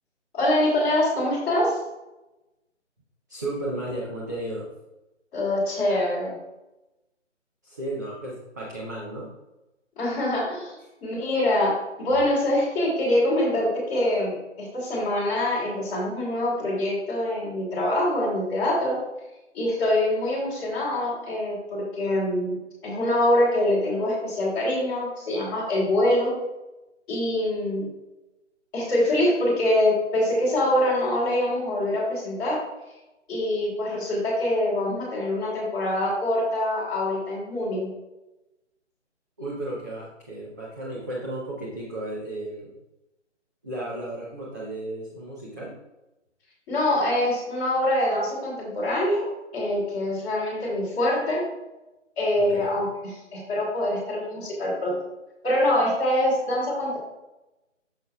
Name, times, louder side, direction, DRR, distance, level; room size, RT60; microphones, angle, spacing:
voice 1, 0.3-1.8 5.3-6.3 10.0-10.7 11.0-19.0 19.5-26.3 27.1-27.9 28.7-32.6 33.3-37.9 46.7-49.3 49.5-51.5 52.2-55.0 55.4-57.0, left 1 dB, 10° left, -9 dB, 2.8 m, -24 dB
voice 2, 3.3-4.7 7.6-9.3 39.4-42.7 43.6-45.7 52.4-52.9, right 1 dB, 15° right, -7 dB, 0.7 m, -34 dB
9.0 x 7.1 x 2.3 m, 0.99 s
figure-of-eight pair, 150°, 37 cm